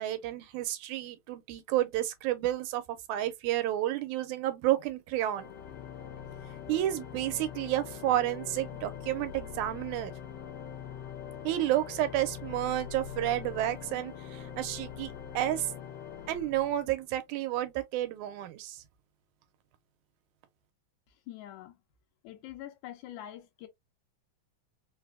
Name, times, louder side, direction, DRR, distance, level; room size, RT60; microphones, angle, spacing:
voice 1, 0.0-2.8 3.1-5.5 6.7-10.1 11.4-15.7 16.3-18.8, right 13 dB, 90° right, 2.0 m, -31 dB
Organ, 5.3-17.2, left 9 dB, 70° left, 1.6 m, -43 dB
voice 2, 21.3-21.7 22.2-23.7, left 12 dB, 90° left, 2.1 m, -44 dB
5.0 x 2.0 x 2.2 m
omnidirectional pair, 3.3 m